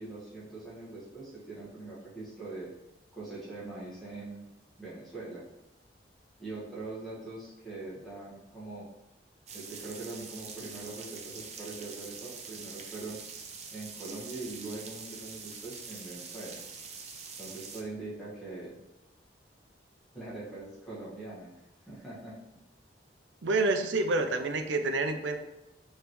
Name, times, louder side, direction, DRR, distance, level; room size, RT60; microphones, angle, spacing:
voice 1, 0.0-2.7 3.1-4.4 4.8-5.4 6.4-8.9 9.5-13.2 13.7-16.6 17.4-18.8 20.1-21.5 21.9-22.4, right 2 dB, ahead, -9 dB, 1.5 m, -42 dB
sound 1, 9.5-17.8, right 5 dB, 35° right, 0.5 m, -44 dB
voice 2, 23.4-25.4, right 2 dB, 90° right, 7 dB, 0.5 m, -28 dB
5.0 x 3.2 x 3.1 m, 0.96 s
head